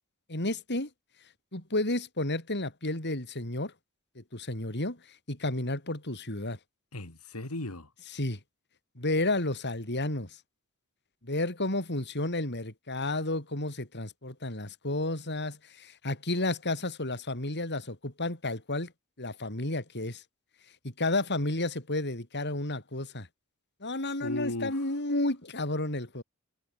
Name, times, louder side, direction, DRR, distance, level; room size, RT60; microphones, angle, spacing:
voice 1, 0.3-0.9 1.5-3.7 4.1-6.6 8.1-8.4 8.9-10.4 11.2-18.9 19.2-20.2 20.8-23.3 23.8-26.2, left 2 dB, 50° left, 6.5 m, -32 dB
voice 2, 6.9-7.9 24.2-24.9, left 2 dB, 90° left, 3.0 m, -36 dB
head